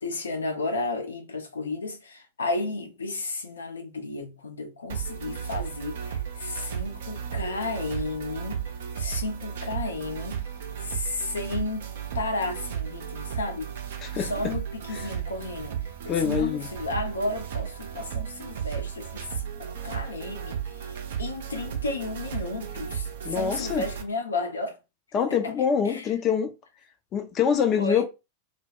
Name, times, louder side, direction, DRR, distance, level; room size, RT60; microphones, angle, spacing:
voice 1, 0.0-8.7 8.9-10.5 10.8-13.7 14.1-24.8 25.3-25.5 25.8-26.2 27.6-28.0, left 3 dB, 70° left, 0.6 m, -33 dB
sound 1, 4.9-24.0, right 9 dB, 60° right, 0.5 m, -34 dB
voice 2, 14.0-14.3 16.1-16.7 23.2-23.8 25.1-26.5 27.1-28.0, left 7 dB, 30° left, 0.5 m, -25 dB
2.1 x 2.1 x 3.6 m
figure-of-eight pair, 90°, 0 cm